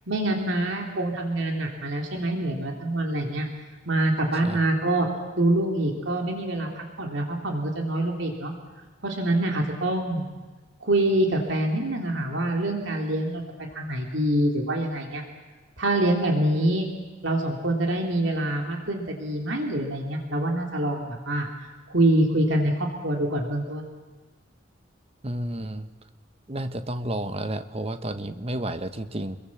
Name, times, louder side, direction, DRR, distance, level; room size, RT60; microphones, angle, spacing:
voice 1, 0.1-3.5 3.9-5.1 5.4-8.5 9.0-10.3 10.8-15.2 15.8-16.9 17.2-21.5 21.9-23.9, right 1 dB, 65° right, 2 dB, 3.1 m, -25 dB
voice 2, 25.2-25.9 26.5-29.4, right 1 dB, 30° right, 9 dB, 1.2 m, -31 dB
28.0 x 22.0 x 7.3 m, 1.3 s
head